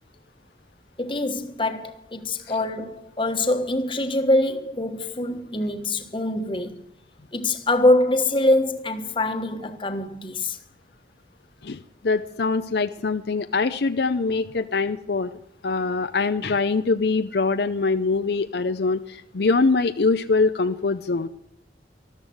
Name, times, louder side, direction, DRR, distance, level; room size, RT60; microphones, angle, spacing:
voice 1, 1.0-6.8 7.3-10.6, left 1 dB, 30° left, 1.3 m, -24 dB
voice 2, 11.6-15.3 15.6-21.3, left 4 dB, 65° left, 0.6 m, -23 dB
13.5 x 13.0 x 7.8 m
head